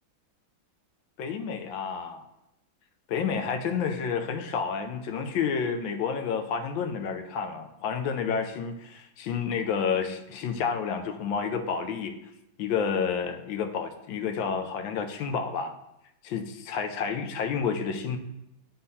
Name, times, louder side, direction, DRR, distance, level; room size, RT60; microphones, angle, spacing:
voice 1, 1.2-2.2 3.1-12.1 12.6-15.7 16.2-18.2, left 6 dB, 85° left, 5 dB, 1.4 m, -30 dB
11.5 x 3.8 x 2.7 m, 0.87 s
omnidirectional pair, 2.1 m